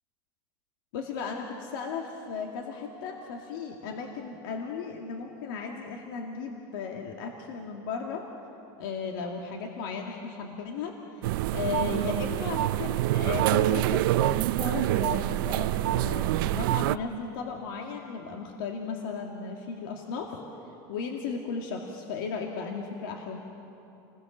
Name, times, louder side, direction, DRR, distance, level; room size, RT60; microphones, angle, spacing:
voice 1, 0.9-8.3 8.8-20.4 20.9-23.4, left 5 dB, 80° left, 1 dB, 2.2 m, -35 dB
sound 1, 11.2-17.0, right 16 dB, 80° right, 0.5 m, -26 dB
29.5 x 21.0 x 7.4 m, 2.9 s
supercardioid pair, 165°, 11 cm